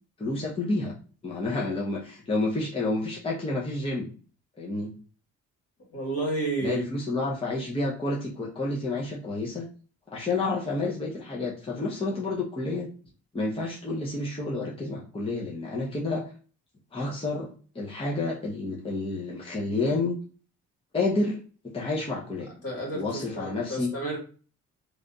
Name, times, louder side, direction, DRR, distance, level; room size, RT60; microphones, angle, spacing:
voice 1, 0.2-0.9 1.2-4.1 4.6-4.9 6.6-9.7 10.1-12.9 13.3-16.3 16.9-17.5 17.7-20.2 20.9-21.4 21.7-22.5 22.9-23.9, left 2 dB, 20° left, -3 dB, 0.9 m, -29 dB
voice 2, 5.9-6.8 22.6-24.2, right 2 dB, 50° left, -1 dB, 2.1 m, -31 dB
3.2 x 2.5 x 4.0 m, 0.38 s
cardioid pair, 90°, 30 cm